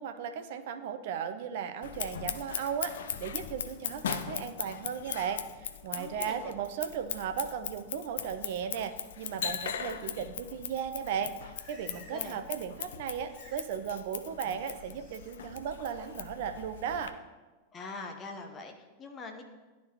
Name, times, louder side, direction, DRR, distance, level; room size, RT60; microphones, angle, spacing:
voice 1, 0.0-17.2, right 7 dB, 55° right, 8 dB, 0.5 m, -36 dB
Scissors, 1.8-17.1, left 8 dB, 60° left, 0.4 m, -39 dB
voice 2, 5.9-6.5 12.1-12.4 17.7-19.4, left 3 dB, 25° left, 4 dB, 0.9 m, -43 dB
Livestock farm animals working animals, 11.3-12.4 12.7-13.7 14.0-15.3 15.8-16.2, equal, 10° right, 1.9 m, -58 dB
11.5 x 4.2 x 2.9 m, 1.2 s
figure-of-eight pair, 90°, 0 cm